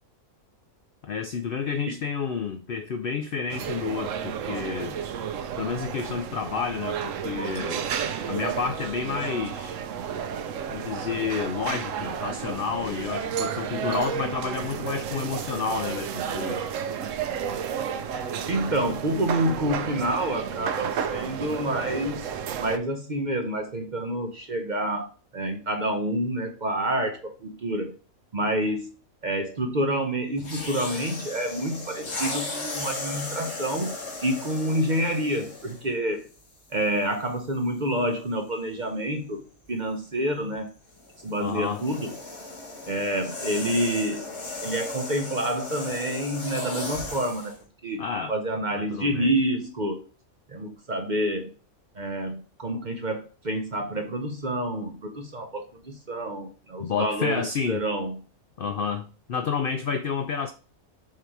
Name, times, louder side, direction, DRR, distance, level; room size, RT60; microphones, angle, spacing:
voice 1, 1.0-5.0 5.6-7.9 8.2-9.8 10.7-16.7 41.4-41.8 48.0-48.3 48.7-49.3 56.8-57.8 58.6-60.5, left 6 dB, 70° left, 0.5 m, -30 dB
sound 1, 3.5-22.8, right 8 dB, 70° right, 0.9 m, -32 dB
voice 2, 18.5-22.3 22.6-28.0 28.3-28.9 29.2-33.9 34.2-36.3 36.7-39.4 39.7-40.7 41.2-42.1 42.9-44.4 44.6-47.6 47.8-48.0 48.3-50.0 50.5-51.5 51.9-58.2, right 1 dB, 40° right, 0.7 m, -28 dB
sound 2, 30.4-35.9 36.7-36.9 40.9-47.6, left 2 dB, 50° left, 1.9 m, -36 dB
7.3 x 2.8 x 4.6 m
omnidirectional pair, 1.5 m